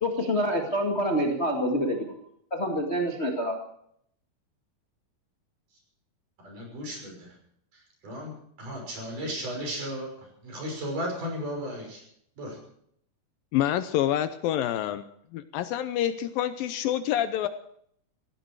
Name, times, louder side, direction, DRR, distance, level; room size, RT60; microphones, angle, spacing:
voice 1, 0.0-2.1 2.5-3.6, equal, 25° left, 1 dB, 1.3 m, -27 dB
voice 2, 6.4-7.3 8.0-8.3 8.6-12.0 12.4-12.6, equal, 55° right, 1 dB, 7.5 m, -35 dB
voice 3, 13.5-15.0 15.3-17.5, left 11 dB, 75° left, 11 dB, 2.3 m, -27 dB
18.0 x 16.5 x 4.8 m, 0.69 s
omnidirectional pair, 4.4 m